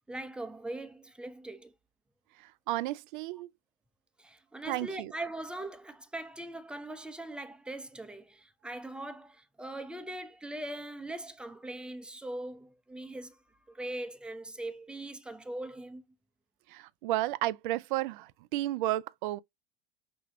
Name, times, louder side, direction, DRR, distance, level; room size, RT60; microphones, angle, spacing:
voice 1, 0.1-1.7 4.2-13.4 13.7-16.0, right 1 dB, 5° right, 0.7 m, -41 dB
voice 2, 2.4-3.5 4.7-5.1 16.7-19.4, right 15 dB, 60° right, 0.5 m, -33 dB
6.1 x 2.3 x 2.8 m
figure-of-eight pair, 80°, 29 cm